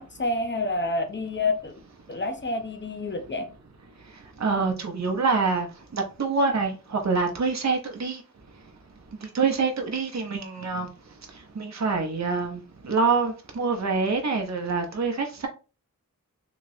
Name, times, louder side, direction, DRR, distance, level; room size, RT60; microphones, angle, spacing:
voice 1, 0.0-1.7 2.1-3.4, left 2 dB, 35° left, 0.7 m, -28 dB
voice 2, 4.4-5.7 5.9-8.2 9.2-10.9 11.6-15.5, right 4 dB, 50° right, 0.7 m, -26 dB
3.1 x 2.9 x 2.6 m
wide cardioid pair, 45°, 34 cm